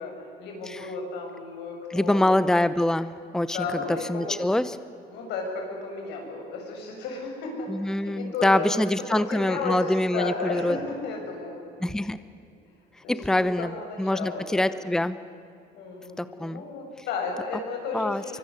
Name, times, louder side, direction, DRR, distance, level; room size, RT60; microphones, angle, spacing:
voice 1, 0.0-2.5 3.4-4.3 5.1-8.8 9.1-11.6 13.0-14.8 15.7-18.4, left 4 dB, 85° left, 1 dB, 7.5 m, -34 dB
voice 2, 1.9-3.6 4.1-4.7 7.7-10.8 11.8-12.2 13.1-13.7 14.0-15.2 16.2-16.6 17.9-18.4, left 1 dB, 5° left, 14 dB, 0.8 m, -25 dB
24.0 x 24.0 x 9.9 m, 2.6 s
cardioid pair, 110°, 17 cm